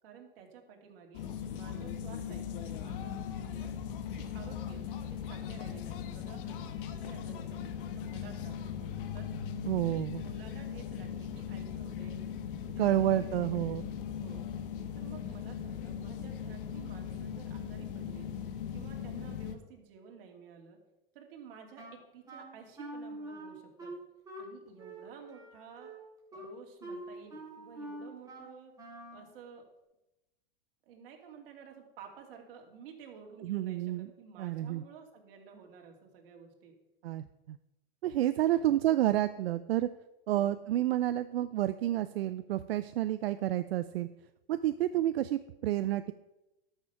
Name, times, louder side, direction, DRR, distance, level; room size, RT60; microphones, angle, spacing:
voice 1, 0.0-3.7 4.1-9.3 9.8-12.2 12.6-13.3 14.2-14.4 14.9-18.3 18.7-20.8 21.1-24.0 24.4-25.9 26.3-28.7 29.1-29.6 30.9-36.8 38.5-38.9 40.3-40.5, right 6 dB, 65° right, 2 dB, 2.7 m, -52 dB
sound 1, 1.1-19.6, left 8 dB, 60° left, 1.2 m, -39 dB
voice 2, 9.6-10.2 12.8-13.9 33.4-34.1 34.4-34.8 37.0-37.6 38.0-39.9 40.3-44.1 44.5-46.1, right 13 dB, 85° right, 12 dB, 0.5 m, -30 dB
Wind instrument woodwind instrument, 21.8-29.3, right 1 dB, 10° right, 3.1 m, -45 dB
12.5 x 6.7 x 5.7 m, 0.94 s
supercardioid pair, 130°, 30 cm